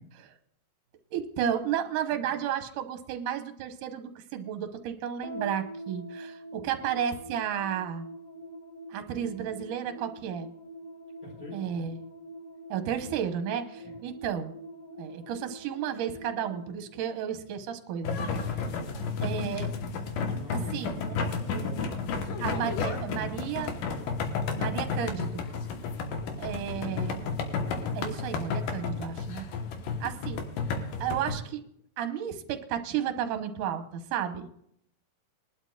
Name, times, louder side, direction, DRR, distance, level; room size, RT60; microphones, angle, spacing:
voice 1, 1.1-8.1 8.9-10.5 11.5-12.0 12.7-14.5 15.0-18.5 19.2-19.7 20.5-21.2 22.4-23.7 24.6-25.4 26.4-27.2 27.9-29.4 30.0-30.4 31.0-31.6 32.0-34.5, right 9 dB, 75° right, 7 dB, 2.5 m, -33 dB
sound 1, 5.2-17.7, right 1 dB, 5° left, 1.2 m, -45 dB
voice 2, 11.2-11.8 13.8-13.9 20.3-22.4, left 2 dB, 45° left, -3 dB, 5.9 m, -44 dB
sound 2, 18.0-31.3, left 4 dB, 75° left, 2.8 m, -32 dB
21.5 x 11.5 x 2.4 m, 0.69 s
omnidirectional pair, 4.0 m